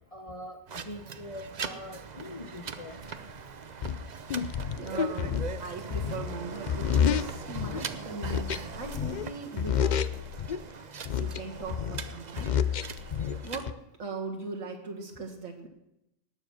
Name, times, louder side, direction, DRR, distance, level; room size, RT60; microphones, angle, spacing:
voice 1, 0.1-3.0 7.8-7.9 10.8-10.9, left 1 dB, 30° left, 5 dB, 0.8 m, -43 dB
sound 1, 0.7-13.6, right 6 dB, 40° right, 0.7 m, -41 dB
sound 2, 3.1-3.2 3.8-7.9 8.2-9.3 9.6-10.6 11.1-13.7, left 8 dB, 60° left, 0.4 m, -30 dB
voice 2, 4.8-10.1 11.1-12.6 13.4-13.7 14.0-15.7, right 3 dB, 75° right, 0 dB, 2.3 m, -39 dB
19.0 x 7.4 x 6.2 m, 0.84 s
omnidirectional pair, 1.4 m